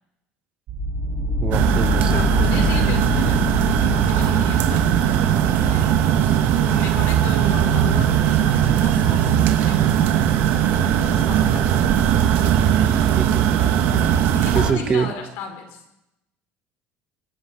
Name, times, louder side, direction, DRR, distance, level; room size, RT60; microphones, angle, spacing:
sound 1, 0.7-12.6, left 3 dB, 45° right, 7.6 m, -29 dB
voice 1, 1.4-2.3 13.1-13.5 14.5-15.1, right 6 dB, 25° right, 11 dB, 1.2 m, -24 dB
sound 2, 1.5-14.7, right 10 dB, 60° right, 2.2 m, -19 dB
voice 2, 2.0-6.0 6.6-10.6 10.8-12.2 14.3-15.8, left 4 dB, 70° left, 6 dB, 4.9 m, -35 dB
25.5 x 16.0 x 6.5 m, 0.87 s
cardioid pair, 165°, 4 cm